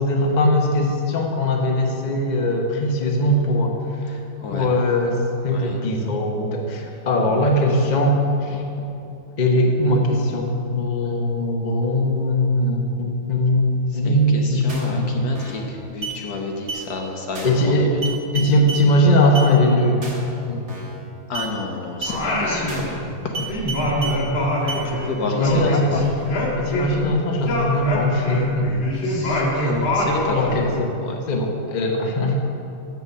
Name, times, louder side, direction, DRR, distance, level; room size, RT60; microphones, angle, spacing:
voice 1, 0.0-3.8 4.5-8.6 9.4-15.3 17.4-17.9 18.3-20.0 20.5-20.6 23.8-24.3 25.3-26.0 26.6-28.7 30.3-30.9 31.3-32.4, left 1 dB, 40° left, 1 dB, 0.6 m, -20 dB
voice 2, 4.0-4.7 5.5-5.8 6.8-6.9 13.9-17.9 21.3-22.9 23.2-23.7 24.8-26.0 29.0-30.7 31.0-31.2, left 3 dB, 60° left, 1 dB, 1.1 m, -30 dB
sound 1, 14.7-15.0 15.3-15.7 16.0-16.2 16.7-16.8 17.3-17.7 18.0-18.8 19.3-19.5 20.0-20.3 20.7-21.0 21.3-21.5 22.0-22.2 22.7-23.0 23.3-24.2 24.7-24.8, right 4 dB, 45° right, 2.0 m, -31 dB
Singing, 22.1-23.2 23.5-27.1 27.4-30.6, equal, 75° left, 2.7 m, -24 dB
7.5 x 7.0 x 7.3 m, 2.8 s
omnidirectional pair, 2.2 m